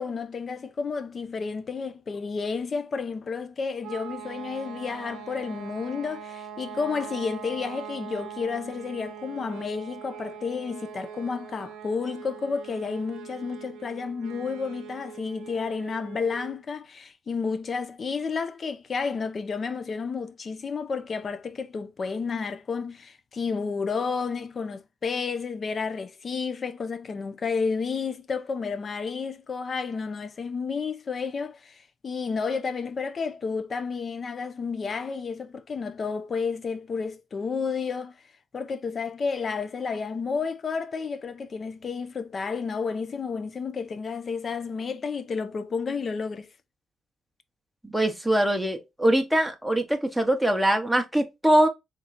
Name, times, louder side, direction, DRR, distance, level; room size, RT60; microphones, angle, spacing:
voice 1, 0.0-38.1 38.5-46.5, left 5 dB, 40° left, 0.5 m, -31 dB
sound 1, 3.8-16.6, right 8 dB, 85° right, 0.6 m, -42 dB
voice 2, 47.8-51.7, right 1 dB, ahead, 1.0 m, -23 dB
3.7 x 2.8 x 4.1 m
cardioid pair, 90°, 0 cm